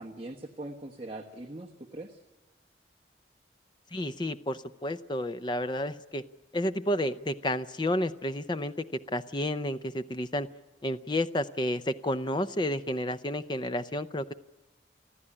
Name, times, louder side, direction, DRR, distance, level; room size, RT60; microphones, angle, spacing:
voice 1, 0.0-2.2, right 1 dB, 30° right, 1 dB, 1.2 m, -41 dB
voice 2, 3.9-6.2 6.5-8.7 9.1-10.5 10.8-14.3, left 1 dB, 25° left, 11 dB, 0.6 m, -31 dB
29.5 x 11.0 x 10.0 m, 1.2 s
head